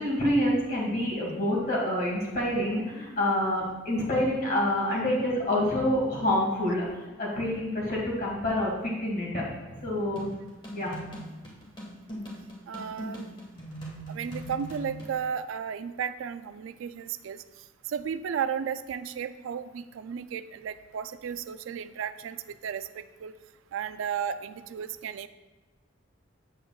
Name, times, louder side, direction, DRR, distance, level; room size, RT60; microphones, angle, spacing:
voice 1, 0.0-9.4 9.8-10.3 10.7-11.0, left 1 dB, 45° left, -4 dB, 1.7 m, -27 dB
sound 1, 10.2-15.1, equal, 25° left, 1.4 m, -41 dB
voice 2, 12.7-13.3 14.1-17.4 17.9-23.3 23.7-25.3, right 7 dB, 85° right, 11 dB, 0.3 m, -34 dB
8.0 x 7.7 x 2.3 m, 1.2 s
head